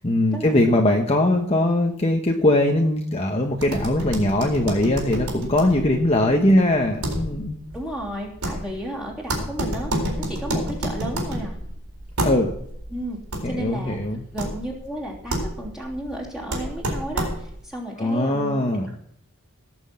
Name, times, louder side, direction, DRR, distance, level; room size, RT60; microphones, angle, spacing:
voice 1, 0.0-7.6 12.2-12.5 13.4-14.2 18.0-18.9, left 1 dB, 25° left, 1 dB, 1.1 m, -21 dB
sound 1, 3.5-17.7, right 1 dB, 85° right, 4.1 m, -30 dB
voice 2, 7.7-11.5 12.9-13.2 13.4-14.0 14.3-18.6 18.9-19.0, right 1 dB, ahead, -5 dB, 3.1 m, -33 dB
17.5 x 6.3 x 7.6 m, 0.70 s
head